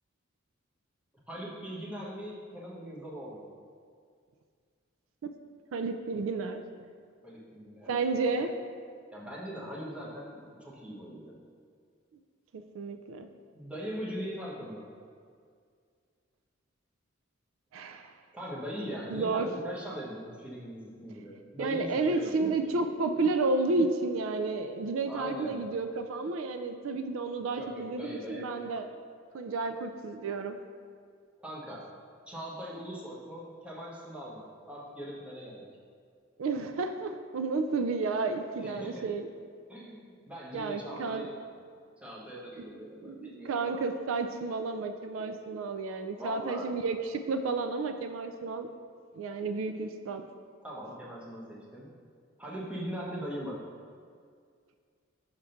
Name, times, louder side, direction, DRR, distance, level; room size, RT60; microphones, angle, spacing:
voice 1, 1.3-3.5 7.2-8.4 9.1-11.4 13.5-14.9 18.3-22.3 25.1-25.7 27.5-28.7 31.4-31.9 32.3-35.7 38.6-39.1 39.7-41.3 42.0-43.8 46.1-46.7 50.6-51.9 52.4-53.6, equal, 5° right, -6 dB, 1.1 m, -41 dB
voice 2, 5.7-6.6 7.9-8.5 12.5-13.3 17.7-18.1 19.1-19.5 21.6-28.9 29.3-30.6 36.4-39.3 40.5-41.3 43.0-48.7 49.2-50.2, right 3 dB, 85° right, 8 dB, 0.4 m, -31 dB
6.5 x 3.6 x 5.7 m, 2.1 s
head